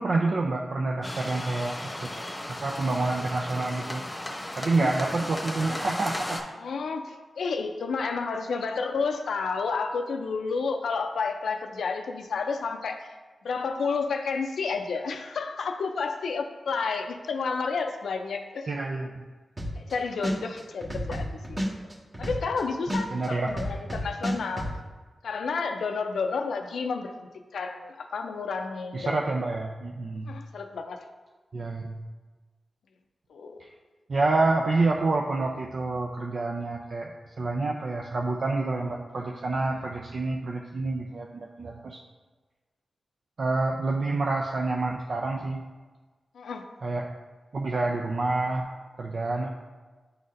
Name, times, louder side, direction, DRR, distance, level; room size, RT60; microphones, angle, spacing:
voice 1, 0.0-2.1 2.6-4.0 4.6-6.4 18.7-19.2 23.1-23.5 28.9-30.4 31.5-32.0 33.6-33.7 34.1-42.0 43.4-45.6 46.8-47.1 47.5-48.7 49.0-49.5, right 3 dB, 60° right, 0 dB, 0.4 m, -28 dB
sound 1, 1.0-6.4, left 1 dB, 25° left, 1.0 m, -35 dB
voice 2, 6.6-13.1 13.4-18.7 19.8-21.6 22.2-24.7 25.2-29.3 30.3-31.0 33.3-33.6 46.3-46.7, left 4 dB, 90° left, 5 dB, 0.4 m, -31 dB
sound 2, 19.6-19.9 20.2-22.6 22.9-24.7, equal, 25° right, 1.4 m, -30 dB
9.3 x 4.0 x 2.5 m, 1.3 s
cardioid pair, 70°, 0 cm